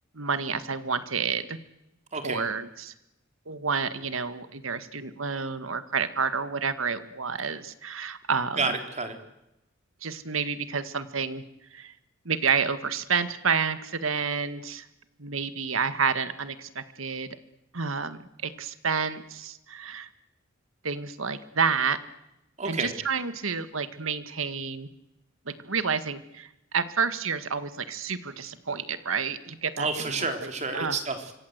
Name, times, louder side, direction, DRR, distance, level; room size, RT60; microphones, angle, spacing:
voice 1, 0.1-1.6 2.2-2.9 3.5-8.7 10.0-11.4 11.7-11.9 12.3-14.9 15.2-17.3 17.7-20.1 20.8-22.0 22.7-24.9 25.5-30.3 30.7-31.0, right 5 dB, 75° right, 12 dB, 1.8 m, -29 dB
voice 2, 2.1-2.5 8.6-9.2 22.6-22.9 29.8-31.3, right 4 dB, 35° right, 6 dB, 3.8 m, -30 dB
25.5 x 25.0 x 8.2 m, 0.89 s
head